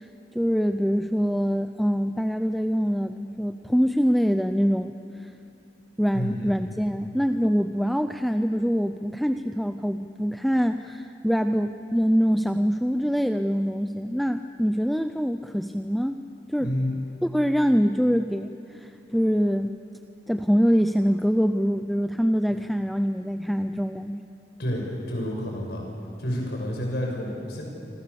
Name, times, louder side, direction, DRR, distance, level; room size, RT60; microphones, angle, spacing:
voice 1, 0.0-4.9 5.2-5.3 6.0-16.2 16.5-16.7 17.2-19.7 20.3-24.2, equal, ahead, 8 dB, 0.5 m, -24 dB
voice 2, 6.1-6.5 16.6-16.9 24.6-25.8 26.2-27.6, equal, 70° left, 0 dB, 6.8 m, -29 dB
27.5 x 25.5 x 7.0 m, 2.7 s
head